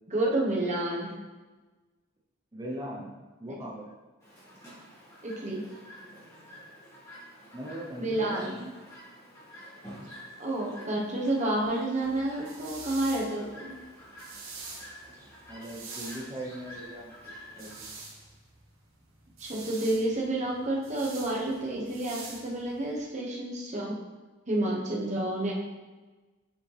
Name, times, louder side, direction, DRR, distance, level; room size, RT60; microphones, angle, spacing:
voice 1, 0.1-1.2 3.5-3.6 5.2-5.6 8.0-8.5 10.4-13.7 19.4-24.0 24.5-25.5, right 1 dB, 35° right, -2 dB, 1.1 m, -30 dB
voice 2, 2.5-3.9 7.5-8.7 15.5-17.2 17.6-17.9, right 1 dB, 20° right, -3 dB, 0.8 m, -40 dB
Chirp tweet, 4.2-17.8, equal, 15° left, 2.0 m, -49 dB
sound 1, 12.0-23.0, right 3 dB, 80° right, 1.5 m, -46 dB
7.1 x 5.1 x 3.4 m, 1.2 s
head